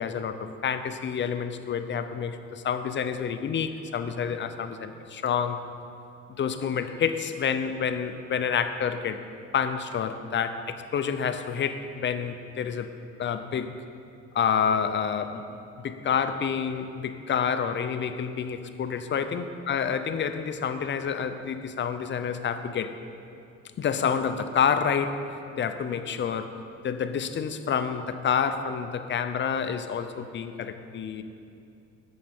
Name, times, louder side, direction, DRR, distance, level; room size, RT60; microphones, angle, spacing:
voice 1, 0.0-5.6 6.4-9.2 9.5-12.9 13.2-13.7 14.3-15.6 15.8-22.9 23.8-25.2 25.6-26.5 26.8-31.2, left 7 dB, 40° left, 10 dB, 0.4 m, -28 dB
7.8 x 7.2 x 3.5 m, 2.6 s
cardioid pair, 90°, 30 cm